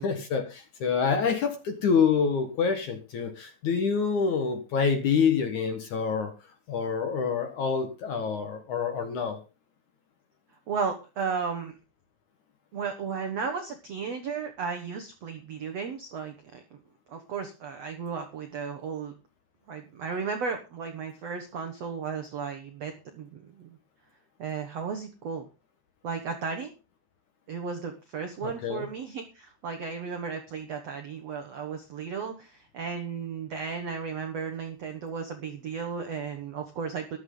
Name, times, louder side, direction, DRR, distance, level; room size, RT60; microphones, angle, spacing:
voice 1, 0.0-6.3 6.7-9.4 28.4-28.9, left 6 dB, 60° left, 6 dB, 2.2 m, -27 dB
voice 2, 10.7-11.7 12.7-16.6 17.1-19.1 19.7-23.8 24.4-25.5 26.0-26.7 27.5-37.2, right 5 dB, 70° right, 5 dB, 1.5 m, -34 dB
14.0 x 12.5 x 3.9 m, 0.31 s
omnidirectional pair, 5.0 m